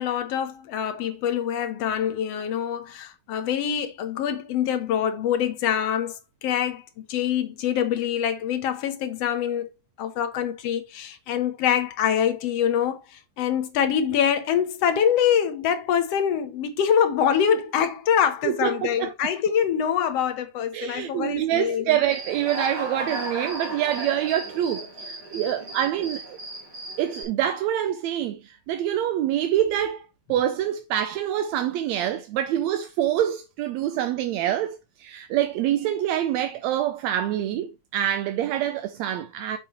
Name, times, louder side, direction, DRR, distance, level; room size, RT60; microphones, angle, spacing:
voice 1, 0.0-9.7 10.0-22.0, left 8 dB, 65° left, 1.8 m, -25 dB
voice 2, 18.4-19.3 20.7-26.4 27.0-39.6, right 11 dB, 75° right, 1.8 m, -26 dB
Human voice / Cricket, 22.1-27.2, right 1 dB, 30° right, 3.6 m, -35 dB
6.8 x 6.8 x 3.1 m
omnidirectional pair, 3.6 m